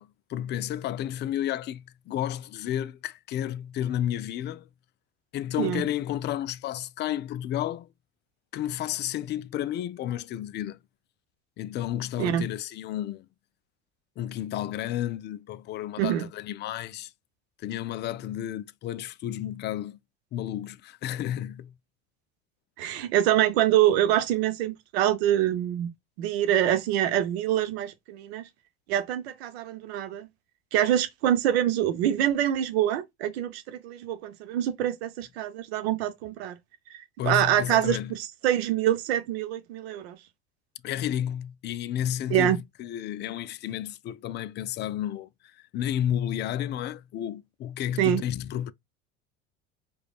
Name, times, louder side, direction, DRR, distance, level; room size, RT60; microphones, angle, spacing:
voice 1, 0.0-4.7 5.3-7.9 8.5-10.8 11.6-13.3 14.2-17.1 17.6-20.0 20.3-21.7 37.2-38.1 40.8-48.7, left 11 dB, 35° left, 0.4 m, -32 dB
voice 2, 22.8-25.9 26.2-28.4 28.9-30.3 30.7-36.6 37.2-40.2 42.3-42.6 48.0-48.2, right 12 dB, 75° right, 0.7 m, -25 dB
4.9 x 2.3 x 2.3 m
hypercardioid pair, 75°, 31 cm